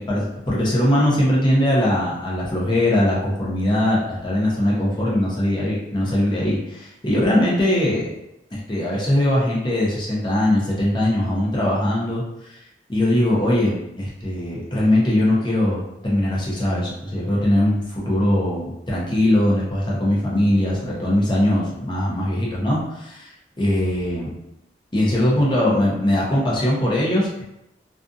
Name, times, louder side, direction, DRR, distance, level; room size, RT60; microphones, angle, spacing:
voice 1, 0.0-8.1 8.5-12.6 12.9-23.3 23.6-24.3 24.9-27.4, left 1 dB, 25° left, -5 dB, 0.6 m, -21 dB
2.5 x 2.4 x 2.5 m, 0.86 s
head